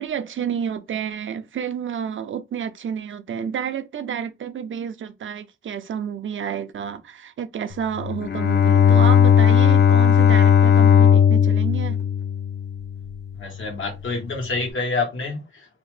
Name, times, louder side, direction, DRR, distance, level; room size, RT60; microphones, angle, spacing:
voice 1, 0.0-12.0, right 8 dB, 80° right, 0.5 m, -30 dB
Bowed string instrument, 8.0-13.2, left 8 dB, 60° left, 0.4 m, -16 dB
voice 2, 13.4-15.7, left 3 dB, 90° left, 1.2 m, -27 dB
2.8 x 2.1 x 3.1 m
wide cardioid pair, 165°, 20 cm